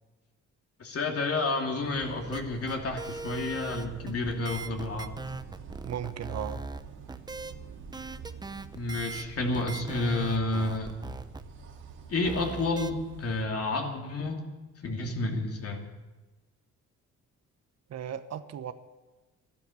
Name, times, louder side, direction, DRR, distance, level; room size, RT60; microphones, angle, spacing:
voice 1, 0.8-5.1 8.7-10.9 12.1-14.5 14.8-15.9, left 2 dB, 50° left, 2 dB, 2.8 m, -30 dB
sound 1, 1.8-13.4, right 6 dB, 80° right, 2.3 m, -46 dB
sound 2, 2.3-6.8 7.1-7.5 7.9-9.3 9.5-11.4 12.2-12.9, right 3 dB, 15° right, 0.7 m, -39 dB
voice 2, 5.8-6.6 17.9-18.7, right 9 dB, 60° right, 10 dB, 1.0 m, -36 dB
12.5 x 12.0 x 8.4 m, 1.2 s
cardioid pair, 90°, 30 cm